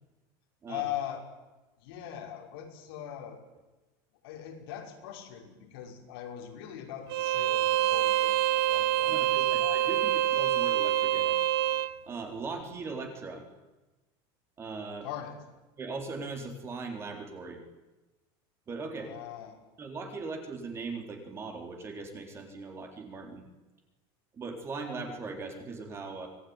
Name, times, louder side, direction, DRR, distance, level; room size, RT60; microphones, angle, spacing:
voice 1, 0.7-1.2 1.8-3.4 4.2-9.8 15.0-15.4 19.0-19.6, left 11 dB, 85° left, 2 dB, 5.7 m, -40 dB
Bowed string instrument, 7.1-11.9, right 13 dB, 85° right, 1.1 m, -26 dB
voice 2, 9.1-11.4 12.0-13.5 14.6-15.1 15.8-17.6 18.7-19.1 19.8-23.4 24.3-26.3, right 3 dB, 20° right, 4 dB, 3.8 m, -39 dB
25.0 x 18.0 x 9.7 m, 1.1 s
cardioid pair, 165°, 12 cm